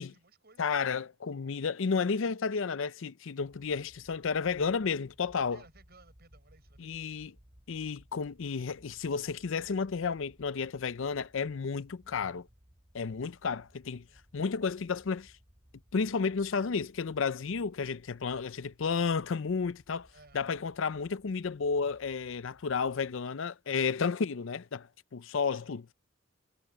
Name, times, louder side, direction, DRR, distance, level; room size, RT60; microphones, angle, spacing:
voice 1, 0.0-0.7 5.5-7.1 14.1-14.2 20.1-20.4 25.5-25.9, right 3 dB, 50° right, 7.3 m, -60 dB
voice 2, 0.6-5.6 6.8-7.3 7.7-12.5 12.9-14.1 14.3-15.3 15.9-20.1 20.3-25.9, left 5 dB, 65° left, 0.5 m, -32 dB
sound 1, 3.4-23.2, equal, 25° right, 5.3 m, -62 dB
head